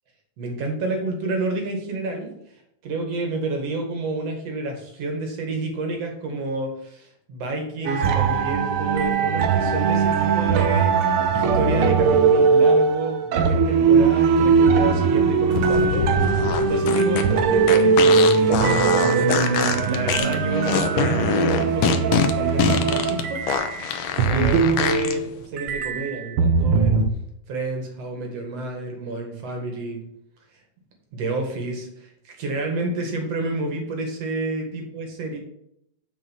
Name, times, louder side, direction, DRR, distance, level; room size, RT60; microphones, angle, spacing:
voice 1, 0.4-2.4 2.8-19.4 19.9-23.4 23.8-23.9 24.3-27.0 27.5-30.0 31.1-35.4, right 2 dB, 55° right, 3 dB, 2.7 m, -29 dB
sound 1, 7.8-25.3 25.6-27.1, right 5 dB, 75° right, 1.3 m, -20 dB
sound 2, 15.5-25.1, left 8 dB, 70° left, 2.1 m, -24 dB
6.7 x 6.5 x 7.2 m, 0.76 s
omnidirectional pair, 3.5 m